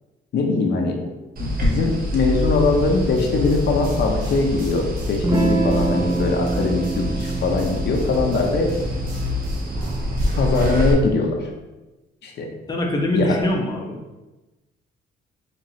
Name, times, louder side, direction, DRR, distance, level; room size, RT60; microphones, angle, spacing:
voice 1, 0.3-1.0 1.4-8.7 10.4-11.4 12.2-12.5 13.1-13.3, left 3 dB, 60° left, 1 dB, 0.6 m, -21 dB
sound 1, 1.4-10.9, left 1 dB, 50° right, 0.9 m, -26 dB
sound 2, 3.2-10.8, right 3 dB, 90° right, 1.1 m, -41 dB
Electric guitar / Strum, 5.2-10.3, right 2 dB, 20° right, 0.5 m, -26 dB
voice 2, 12.7-14.0, left 1 dB, 20° left, 0 dB, 0.6 m, -23 dB
4.3 x 2.9 x 2.7 m, 1.1 s
cardioid pair, 90°, 20 cm